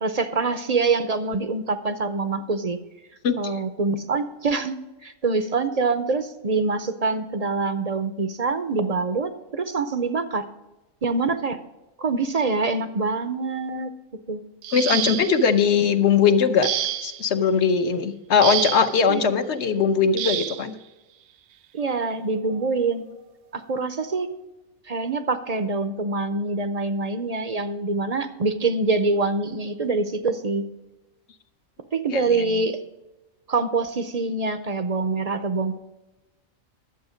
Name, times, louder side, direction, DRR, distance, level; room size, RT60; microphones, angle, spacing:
voice 1, 0.0-2.8 3.4-4.8 5.0-10.4 11.0-11.6 12.0-13.9 14.3-14.4 19.1-19.3 21.7-23.0 23.5-24.3 24.9-30.6 31.9-32.8 33.5-35.8, right 3 dB, 45° right, 10 dB, 0.5 m, -25 dB
voice 2, 3.2-3.6 14.7-16.7 17.0-20.7 32.1-32.4, left 6 dB, 60° left, 9 dB, 1.0 m, -20 dB
sound 1, 14.6-15.5 16.6-17.3 18.4-19.0 20.2-20.6 21.8-22.0 22.5-22.7, right 11 dB, 90° right, 1.0 m, -28 dB
11.0 x 7.9 x 5.1 m, 1.0 s
omnidirectional pair, 1.4 m